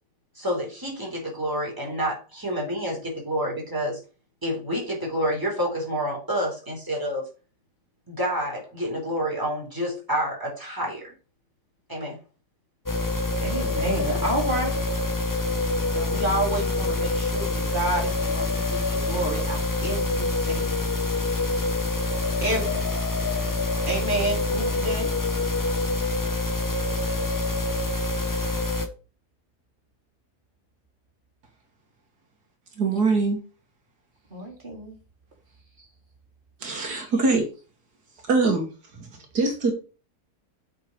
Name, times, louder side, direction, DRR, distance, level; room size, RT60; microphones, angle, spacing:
voice 1, 0.4-4.0 4.4-7.2 8.1-11.1 11.9-12.2, equal, 10° right, -1 dB, 3.7 m, -28 dB
sound 1, 12.9-28.9, left 2 dB, 20° left, 0.6 m, -26 dB
voice 2, 13.4-14.8 15.9-20.8 22.4-22.9 23.4-25.3 34.3-35.0 36.8-36.9, right 2 dB, 30° right, -1 dB, 3.4 m, -30 dB
voice 3, 32.8-33.4 36.6-37.5 38.3-39.7, right 3 dB, 80° right, 3 dB, 2.3 m, -23 dB
7.8 x 6.0 x 4.6 m, 0.34 s
omnidirectional pair, 1.7 m